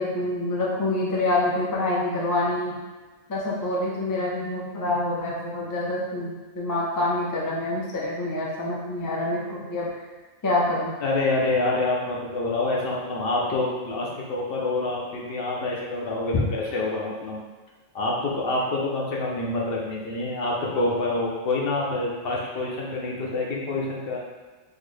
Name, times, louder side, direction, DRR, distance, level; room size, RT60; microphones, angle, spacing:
voice 1, 0.0-2.8 3.3-10.0 10.4-10.9, left 2 dB, 30° left, -4 dB, 0.3 m, -26 dB
voice 2, 11.0-17.4 17.9-24.2, left 2 dB, 60° left, -3 dB, 0.7 m, -27 dB
3.8 x 2.1 x 3.1 m, 1.3 s
omnidirectional pair, 1.2 m